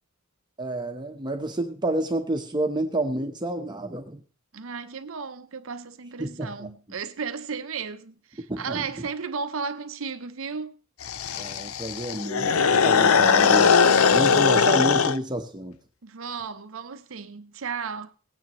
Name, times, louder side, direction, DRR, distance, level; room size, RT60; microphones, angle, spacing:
voice 1, 0.6-4.2 6.2-6.7 8.5-8.8 11.3-15.7, right 1 dB, 20° right, 0.9 m, -29 dB
voice 2, 4.5-10.8 16.0-18.1, right 5 dB, 70° right, 0.7 m, -34 dB
sound 1, 11.0-15.2, left 6 dB, 90° left, 0.6 m, -20 dB
18.0 x 9.3 x 3.0 m
head